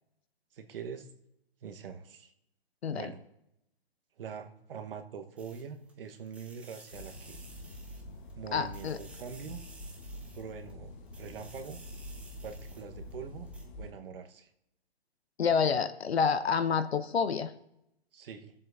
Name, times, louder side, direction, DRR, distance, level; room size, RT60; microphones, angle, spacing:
voice 1, 0.5-1.1 1.6-2.3 2.9-3.2 4.2-7.4 8.3-9.6 10.3-11.8 12.4-13.5 13.8-14.5 18.1-18.5, right 6 dB, 60° right, 6 dB, 1.2 m, -44 dB
sound 1, 5.4-5.9 6.3-8.3 8.7-10.7 11.1-13.1 13.5-13.6, right 2 dB, 5° right, 0.9 m, -55 dB
sound 2, 6.9-13.9, left 1 dB, 50° left, 1.2 m, -46 dB
voice 2, 8.5-9.0 15.4-17.5, left 6 dB, 75° left, 11 dB, 0.8 m, -28 dB
21.5 x 7.5 x 2.7 m, 0.82 s
hypercardioid pair, 135°, 32 cm